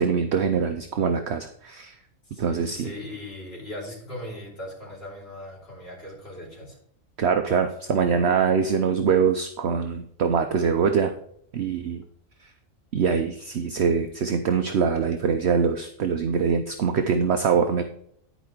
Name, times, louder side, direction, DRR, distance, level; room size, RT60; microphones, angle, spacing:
voice 1, 0.0-1.9 2.4-2.9 7.2-11.1 11.5-12.0 12.9-17.8, right 6 dB, 60° right, 6 dB, 0.9 m, -23 dB
voice 2, 2.2-6.8, left 1 dB, 45° left, -3 dB, 3.3 m, -39 dB
10.5 x 5.1 x 4.5 m, 0.67 s
omnidirectional pair, 1.4 m